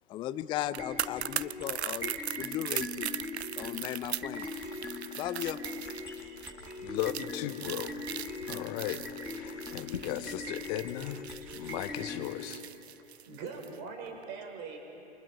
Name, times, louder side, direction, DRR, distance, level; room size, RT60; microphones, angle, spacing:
voice 1, 0.1-3.1 3.6-4.5 5.1-5.6, left 13 dB, 15° left, 13 dB, 0.4 m, -36 dB
sound 1, 0.6-13.8 14.1-14.2, right 10 dB, 75° right, 0.5 m, -39 dB
sound 2, 0.8-12.5, left 3 dB, 5° right, 6.1 m, -41 dB
sound 3, 4.2-10.7, left 6 dB, 75° left, 1.3 m, -50 dB
voice 2, 6.8-8.0 8.4-9.0 9.3-11.2 11.5-12.6, left 12 dB, 40° left, 11 dB, 1.2 m, -36 dB
voice 3, 12.9-14.8, right 5 dB, 45° right, 3 dB, 4.6 m, -42 dB
28.5 x 23.5 x 4.7 m, 2.8 s
figure-of-eight pair, 95°, 33 cm